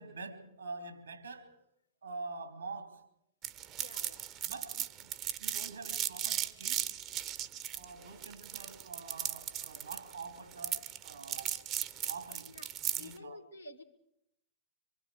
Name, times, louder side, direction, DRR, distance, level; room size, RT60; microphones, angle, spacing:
voice 1, 0.0-1.6 2.0-3.1 4.4-5.1 5.4-7.0 7.7-11.7 12.1-12.6 13.0-13.4, right 3 dB, 75° right, 2.6 m, -46 dB
sound 1, 3.4-13.1, right 11 dB, 35° right, 0.9 m, -37 dB
voice 2, 3.8-4.2 12.5-12.7 13.0-13.8, left 3 dB, 85° left, 2.0 m, -50 dB
25.0 x 24.5 x 4.8 m
figure-of-eight pair, 95°, 0 cm